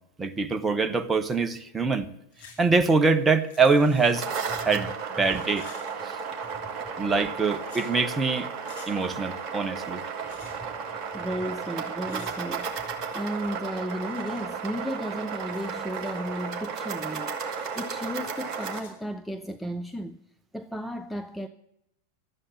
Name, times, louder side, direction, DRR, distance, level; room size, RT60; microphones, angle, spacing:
voice 1, 0.2-2.1 2.6-4.3 4.6-5.7 6.1-6.2 7.0-8.5 8.9-10.0, right 4 dB, 15° right, 1.1 m, -24 dB
sound 1, 2.3-2.6 2.9-4.4 5.2-6.5 7.6-7.9 8.6-8.9 10.2-10.6 12.1-12.4 13.1-13.5 14.1-14.5 15.4-16.2 17.5-18.9, left 6 dB, 50° left, 5.7 m, -52 dB
sound 2, 3.9-18.8, right 6 dB, 35° right, 2.1 m, -34 dB
voice 2, 11.1-20.2 20.5-21.5, equal, ahead, 0.6 m, -34 dB
12.5 x 8.9 x 9.8 m
figure-of-eight pair, 90°, 0 cm